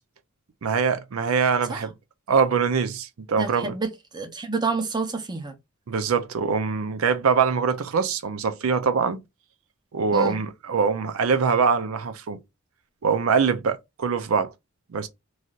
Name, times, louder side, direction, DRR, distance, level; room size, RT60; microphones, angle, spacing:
voice 1, 0.6-1.9 2.3-3.7 5.9-9.2 9.9-12.4 13.0-14.5 14.9-15.1, right 5 dB, 85° right, 0.5 m, -23 dB
voice 2, 3.3-5.6 10.1-10.4, right 3 dB, 20° right, 0.6 m, -29 dB
3.2 x 2.7 x 2.4 m
head